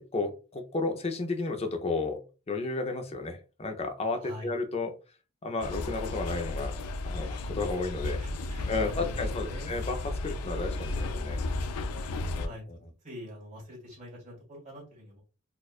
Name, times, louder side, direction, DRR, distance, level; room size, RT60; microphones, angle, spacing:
voice 1, 0.0-4.9 5.4-6.8 7.0-8.2 8.7-11.4 12.3-12.8, left 3 dB, 30° left, 5 dB, 0.5 m, -33 dB
voice 2, 4.2-4.5 8.2-9.8 12.4-12.6 13.0-15.2, equal, 35° right, -3 dB, 1.9 m, -44 dB
sound 1, 5.6-12.5, left 2 dB, 85° left, 0.4 m, -33 dB
4.3 x 2.4 x 2.4 m, 0.33 s
head